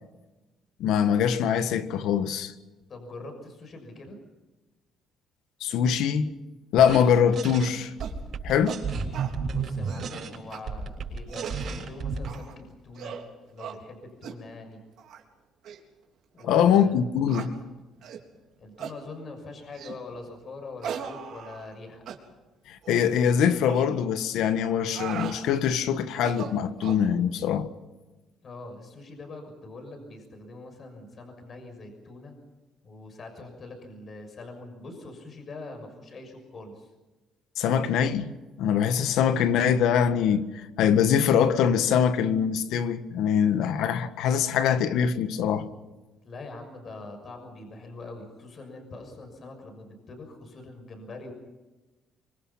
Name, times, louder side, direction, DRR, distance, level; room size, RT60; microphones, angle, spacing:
voice 1, 0.8-2.5 5.6-6.3 6.7-7.9 8.4-8.8 16.5-17.5 22.7-27.7 37.6-38.3 38.6-40.5 40.8-45.7, left 8 dB, 85° left, 1.7 m, -23 dB
voice 2, 2.9-4.2 9.5-13.2 13.5-14.8 16.3-17.0 18.6-22.0 28.4-32.3 32.8-36.9 46.2-51.3, left 2 dB, 40° left, 6.3 m, -43 dB
sound 1, 6.8-7.0 7.3-7.7 8.0-12.4, right 5 dB, 50° right, 6.8 m, -32 dB
sound 2, 8.0-8.2 8.6-8.8 9.1-9.3 9.7-10.1 10.5-10.6 11.1-11.6 12.2-12.5 12.9-13.2 13.6-13.8 14.2-14.4 15.0-15.2 15.6-15.8 16.4-16.5 17.3-17.5 18.0-18.2 18.8-19.0 19.7-20.0 20.8-21.8 22.1-22.2 22.8-23.1 23.7-23.9 24.7-25.4 26.1-27.0, right 8 dB, 65° right, 3.8 m, -38 dB
26.0 x 25.0 x 5.8 m
cardioid pair, 130°, 0 cm